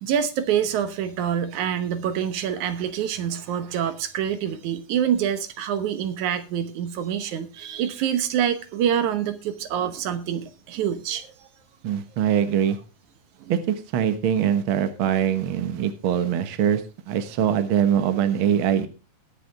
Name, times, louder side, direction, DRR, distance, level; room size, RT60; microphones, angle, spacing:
voice 1, 0.0-11.5 13.4-13.5, right 9 dB, 75° right, 2.3 m, -26 dB
voice 2, 11.8-12.8 13.5-18.9, right 9 dB, 55° right, 1.6 m, -23 dB
20.5 x 6.9 x 3.4 m
omnidirectional pair, 3.6 m